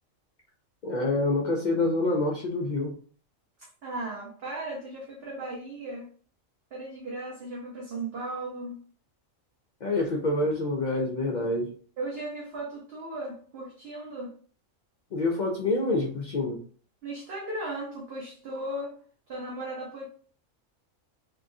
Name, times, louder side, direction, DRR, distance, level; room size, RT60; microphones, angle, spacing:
voice 1, 0.8-2.9 9.8-11.7 15.1-16.6, left 2 dB, 70° left, 0.4 m, -27 dB
voice 2, 3.6-6.1 6.7-8.8 12.0-14.3 17.0-19.0 19.3-20.1, right 2 dB, 55° right, 0.9 m, -36 dB
3.5 x 2.3 x 2.6 m
omnidirectional pair, 1.4 m